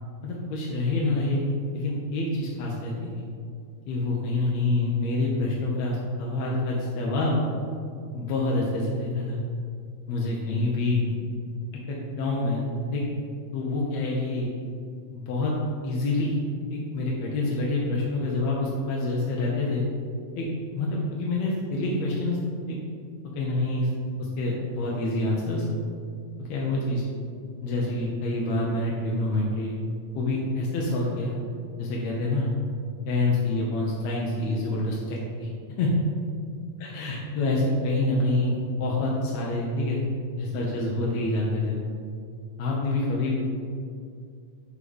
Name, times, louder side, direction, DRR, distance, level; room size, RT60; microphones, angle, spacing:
voice 1, 0.2-1.5 1.7-3.2 3.9-7.4 8.1-9.4 10.1-11.2 11.9-12.7 12.9-13.0 13.5-14.5 15.1-15.5 15.8-16.3 16.7-19.8 20.4-20.5 20.7-22.4 22.7-22.8 23.4-23.9 24.4-25.7 26.4-27.0 27.6-29.7 30.1-31.4 31.8-32.5 33.1-35.5 35.8-35.9 36.8-40.0 40.4-41.8 42.6-43.4, left 2 dB, 70° left, -3 dB, 1.8 m, -27 dB
6.7 x 5.0 x 5.4 m, 2.3 s
omnidirectional pair, 3.8 m